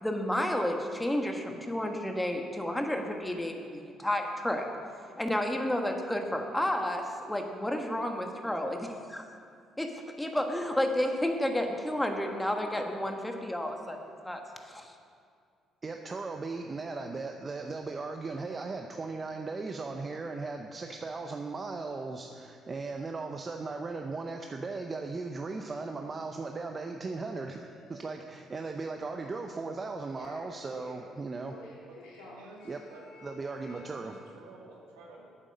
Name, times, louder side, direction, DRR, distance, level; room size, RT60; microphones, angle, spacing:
voice 1, 0.0-4.7 5.2-9.3 9.8-14.9, left 1 dB, 10° left, 3 dB, 1.5 m, -31 dB
voice 2, 15.8-31.6 32.6-32.8 33.2-34.2, right 3 dB, 35° right, 4 dB, 0.7 m, -37 dB
sound 1, 27.4-28.1 29.2-29.7 30.0-31.0 31.4-34.0, left 2 dB, 80° left, 2.3 m, -51 dB
voice 3, 31.9-33.0 33.7-35.3, right 2 dB, 85° right, -2 dB, 2.1 m, -52 dB
8.9 x 8.8 x 6.6 m, 2.3 s
hypercardioid pair, 60°, 0 cm